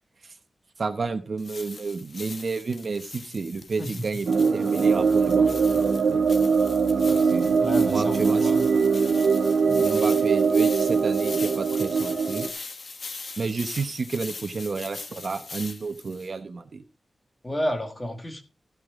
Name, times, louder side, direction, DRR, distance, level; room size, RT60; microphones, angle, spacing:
voice 1, 0.8-6.2 7.1-7.5 7.9-8.5 9.7-12.5 13.4-16.8, right 4 dB, 50° right, 1.0 m, -31 dB
sound 1, 1.4-16.3, left 3 dB, 50° left, 1.3 m, -41 dB
voice 2, 3.8-4.1 7.2-7.3 7.6-8.7 17.4-18.4, equal, 20° left, 1.6 m, -31 dB
sound 2, 4.3-12.5, right 5 dB, 85° right, 1.4 m, -21 dB
14.0 x 8.5 x 3.7 m
wide cardioid pair, 155°, 0 cm